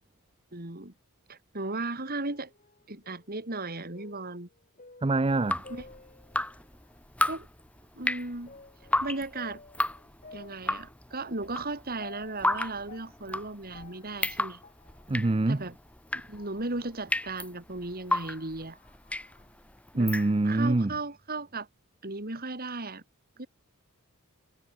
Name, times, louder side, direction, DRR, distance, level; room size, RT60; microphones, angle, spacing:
voice 1, 0.5-0.9 1.3-2.5 2.9-4.5 5.7-5.8 7.2-7.5 7.9-8.5 9.0-9.6 10.3-14.6 15.5-15.8 16.3-18.8 19.9-20.1 20.4-21.7 22.0-23.0 23.4-23.5, right 2 dB, 45° right, 3.1 m, -36 dB
sound 1, 2.3-6.9 7.4-7.5 8.5-17.5 17.9-19.8, left 3 dB, 35° left, 5.8 m, -54 dB
voice 2, 5.0-5.6 15.1-15.6 20.0-20.9, right 2 dB, 25° right, 0.6 m, -25 dB
Drip, 5.3-20.7, left 1 dB, 5° left, 1.4 m, -34 dB
head